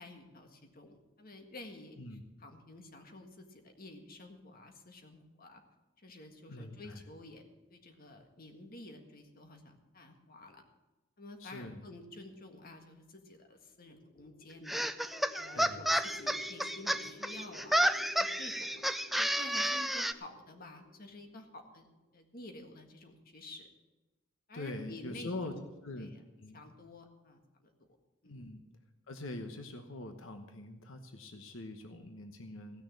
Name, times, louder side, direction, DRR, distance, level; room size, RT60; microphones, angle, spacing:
voice 1, 0.0-2.0 2.4-5.6 6.0-10.6 11.2-14.9 15.3-17.9 18.2-21.9 22.1-23.7 24.5-26.2 26.5-27.7 28.2-28.4, left 2 dB, 45° left, 4 dB, 1.7 m, -51 dB
voice 2, 6.5-7.0 11.4-11.9 15.5-15.9 24.5-25.5 25.8-26.6 28.2-28.6 29.1-32.8, left 2 dB, 90° left, 6 dB, 1.1 m, -43 dB
sound 1, 13.7-21.8, left 2 dB, 70° left, 2.9 m, -55 dB
sound 2, 14.7-20.1, equal, ahead, 0.4 m, -31 dB
16.5 x 6.5 x 8.6 m, 1.1 s
head